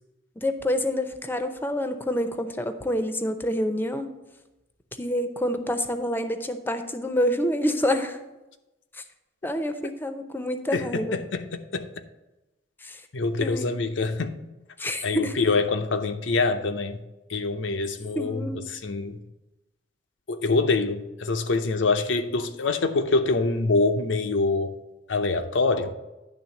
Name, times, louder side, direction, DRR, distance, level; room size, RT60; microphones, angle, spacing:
voice 1, 0.4-4.1 5.0-8.2 9.4-11.2 12.8-13.0 13.4-13.7 14.8-15.3 18.1-18.7, equal, 10° left, 0.6 m, -27 dB
voice 2, 10.7-12.0 13.1-14.4 15.0-17.0 17.3-19.2 20.3-24.7 25.1-25.9, left 3 dB, 85° left, 0.7 m, -25 dB
10.5 x 3.5 x 7.1 m
head